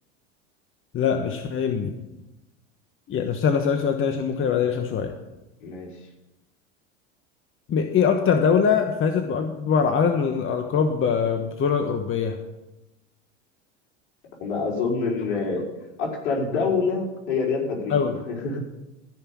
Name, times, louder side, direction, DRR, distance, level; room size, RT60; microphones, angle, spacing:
voice 1, 0.9-1.9 3.1-5.1 7.7-12.4 17.9-18.2, left 6 dB, 35° left, 5 dB, 1.3 m, -23 dB
voice 2, 5.6-6.0 14.4-15.7 16.0-18.0 18.3-18.6, left 4 dB, 65° left, -2 dB, 4.8 m, -26 dB
15.0 x 5.7 x 8.4 m, 0.96 s
hypercardioid pair, 90°, 37 cm